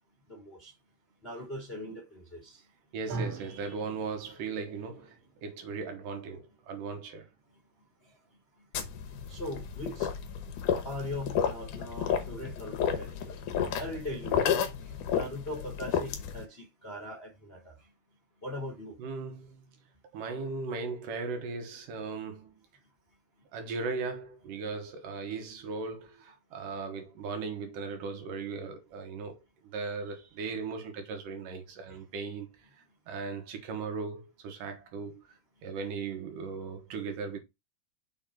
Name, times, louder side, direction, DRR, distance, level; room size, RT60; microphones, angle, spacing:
voice 1, 0.3-0.7 1.2-2.6 4.6-4.7 9.3-10.1 10.8-13.4 13.8-14.6 14.8-17.9 18.4-19.0 31.9-32.0, left 1 dB, 30° left, 1.0 m, -40 dB
voice 2, 2.9-7.3 19.0-19.7 20.1-22.6 23.5-32.7 33.1-37.4, right 4 dB, 90° right, 3.0 m, -38 dB
sound 1, 3.1-11.3, right 4 dB, 55° right, 2.1 m, -46 dB
sound 2, 8.7-16.4, left 8 dB, 75° left, 2.5 m, -32 dB
6.4 x 3.8 x 4.3 m
omnidirectional pair, 3.7 m